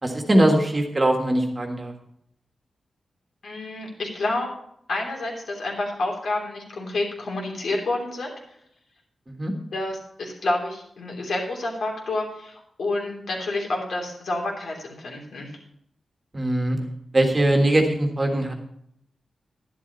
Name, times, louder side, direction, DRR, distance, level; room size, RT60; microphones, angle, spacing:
voice 1, 0.0-1.9 9.3-9.5 16.3-16.8 17.1-18.5, right 1 dB, 25° right, 3 dB, 1.6 m, -21 dB
voice 2, 3.4-4.5 4.9-8.6 9.7-15.6, left 2 dB, 65° left, 0 dB, 3.3 m, -29 dB
12.0 x 11.0 x 4.1 m, 0.71 s
wide cardioid pair, 165°, 0 cm